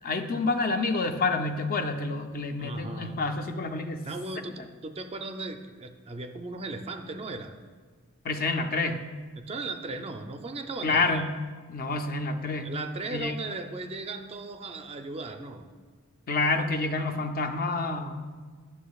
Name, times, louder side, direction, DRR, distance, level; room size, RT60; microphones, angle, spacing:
voice 1, 0.0-4.1 8.2-9.0 10.8-11.4 11.7-12.7 13.1-13.4 16.3-18.3, left 3 dB, 40° left, 6 dB, 0.5 m, -28 dB
voice 2, 2.6-3.2 4.0-7.6 9.4-11.3 12.6-15.7, right 3 dB, 25° right, 7 dB, 0.4 m, -37 dB
11.0 x 7.0 x 2.3 m, 1.5 s
head